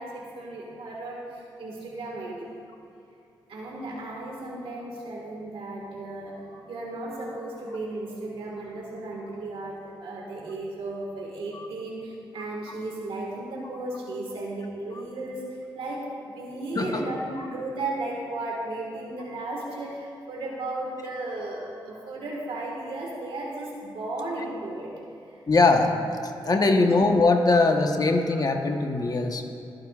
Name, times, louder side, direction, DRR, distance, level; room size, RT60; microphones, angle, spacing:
voice 1, 0.0-2.5 3.5-24.9 25.3-25.4 26.7-26.9 27.5-27.6, right 2 dB, 85° right, -2 dB, 1.7 m, -35 dB
voice 2, 16.7-17.1 17.4-17.5 25.5-25.9 26.4-29.4, left 3 dB, 45° left, 4 dB, 1.1 m, -21 dB
25.0 x 9.1 x 2.4 m, 2.7 s
cardioid pair, 70°, 9 cm